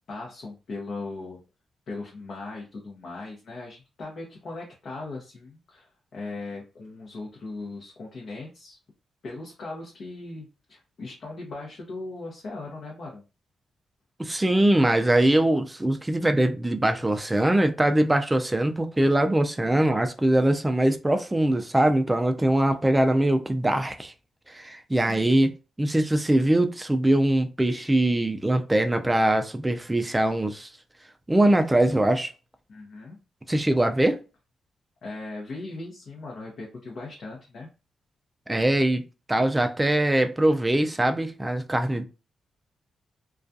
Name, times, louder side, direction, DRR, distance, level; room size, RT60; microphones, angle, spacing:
voice 1, 0.1-1.4 1.9-8.8 9.2-13.2 24.9-25.2 32.7-33.2 35.0-37.7, left 3 dB, 60° left, 0.7 m, -38 dB
voice 2, 14.2-24.1 24.5-25.5 25.8-30.7 31.3-32.3 33.5-34.2 38.5-39.0 39.3-42.0, right 1 dB, 15° right, 0.4 m, -22 dB
2.3 x 2.2 x 2.6 m
cardioid pair, 105°, 0 cm